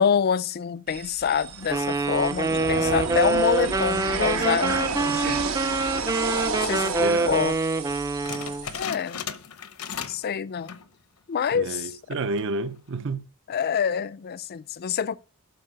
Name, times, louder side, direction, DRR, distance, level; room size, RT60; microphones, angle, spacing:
voice 1, 0.0-5.5 6.5-7.5 8.8-9.2 9.9-10.8 11.3-12.0 13.5-15.2, left 7 dB, 45° left, 0.4 m, -26 dB
sound 1, 0.9-8.8, right 4 dB, 75° right, 1.2 m, -31 dB
Wind instrument woodwind instrument, 1.7-8.7, right 3 dB, 15° right, 0.4 m, -25 dB
voice 2, 7.0-7.4 11.5-13.2, right 3 dB, 60° right, 0.7 m, -30 dB
sound 2, 8.3-10.3 10.6-10.9 11.4-11.5 12.2-12.6, left 7 dB, 85° left, 0.8 m, -36 dB
12.0 x 4.6 x 5.0 m
head